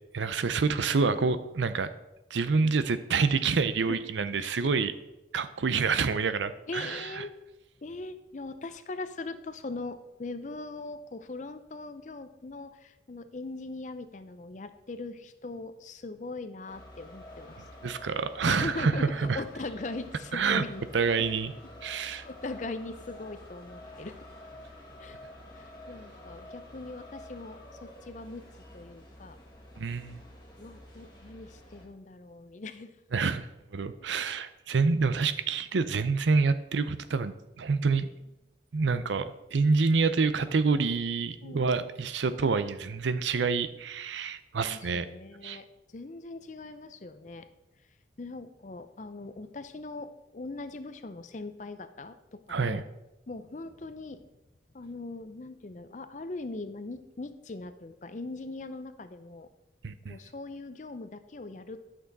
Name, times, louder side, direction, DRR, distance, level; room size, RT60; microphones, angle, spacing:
voice 1, 0.1-1.9 2.3-4.9 5.3-7.2 17.8-19.4 20.3-20.6 20.9-21.5 21.8-22.3 29.8-30.2 33.1-33.5 33.7-38.1 38.7-45.1 45.4-45.6 52.5-52.8 59.8-60.2, right 4 dB, 85° right, 12 dB, 0.5 m, -27 dB
voice 2, 6.7-7.3 7.8-17.6 18.5-19.0 19.3-20.8 22.2-24.2 25.0-25.2 25.5-28.4 28.7-29.4 30.6-32.9 41.4-41.9 43.1-43.5 44.6-47.5 48.2-52.8 53.3-54.3 54.7-59.5 60.1-61.8, left 3 dB, 40° left, 11 dB, 0.5 m, -40 dB
sound 1, 16.7-31.8, left 1 dB, 25° left, 1.9 m, -49 dB
11.0 x 6.2 x 4.0 m, 0.96 s
head